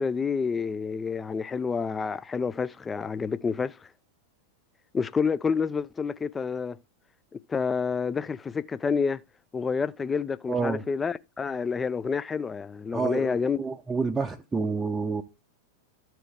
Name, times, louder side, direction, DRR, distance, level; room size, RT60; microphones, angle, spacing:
voice 1, 0.0-3.8 4.9-6.8 7.5-9.2 9.5-13.6, left 5 dB, 15° left, 0.4 m, -28 dB
voice 2, 10.5-10.9 12.9-15.2, right 4 dB, 15° right, 0.7 m, -29 dB
13.0 x 4.5 x 3.3 m
figure-of-eight pair, 90°, 0 cm